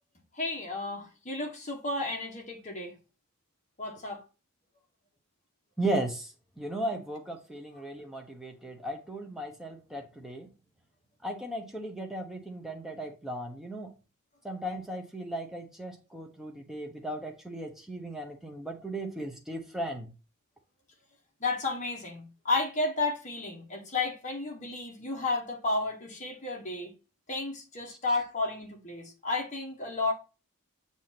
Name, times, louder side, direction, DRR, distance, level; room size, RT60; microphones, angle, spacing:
voice 1, 0.3-2.9 3.8-4.2 21.4-26.9 27.3-30.1, left 3 dB, 35° left, 1.4 m, -32 dB
voice 2, 5.8-10.5 11.2-13.9 14.4-20.1 27.9-28.0, right 1 dB, ahead, 0.9 m, -36 dB
7.0 x 2.7 x 5.8 m
head